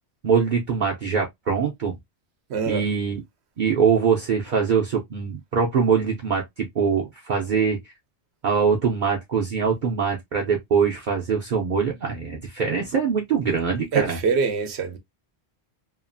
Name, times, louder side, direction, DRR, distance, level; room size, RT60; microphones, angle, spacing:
voice 1, 0.2-1.9 2.7-3.2 3.6-7.9 8.4-14.2, right 6 dB, 55° right, 0.7 m, -23 dB
voice 2, 2.5-2.8 13.9-15.0, right 5 dB, 75° right, 0.9 m, -24 dB
2.9 x 2.4 x 2.5 m
omnidirectional pair, 1.1 m